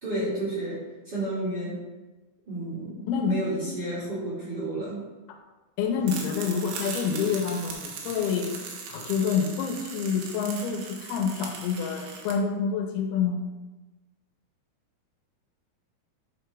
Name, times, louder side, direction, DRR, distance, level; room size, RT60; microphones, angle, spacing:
voice 1, 0.0-1.8 2.5-5.0, right 1 dB, 30° right, -9 dB, 2.5 m, -31 dB
voice 2, 3.1-3.4 5.8-8.6 8.9-13.4, left 6 dB, 85° left, 3 dB, 2.6 m, -27 dB
sound 1, 6.0-12.3, right 5 dB, 90° right, 3.0 m, -39 dB
9.4 x 6.1 x 2.4 m, 1.1 s
omnidirectional pair, 4.6 m